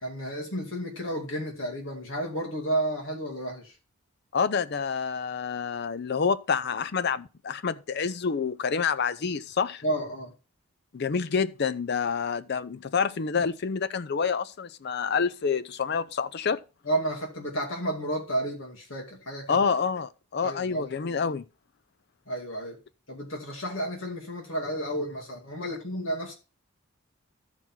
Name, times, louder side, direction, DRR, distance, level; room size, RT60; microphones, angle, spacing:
voice 1, 0.0-3.7 9.8-10.3 16.8-19.6 20.4-20.9 22.3-22.8 23.1-26.3, right 1 dB, 70° left, 2.6 m, -32 dB
voice 2, 4.3-9.8 10.9-16.6 19.5-21.4, left 6 dB, 50° left, 0.5 m, -28 dB
13.5 x 4.5 x 3.7 m
head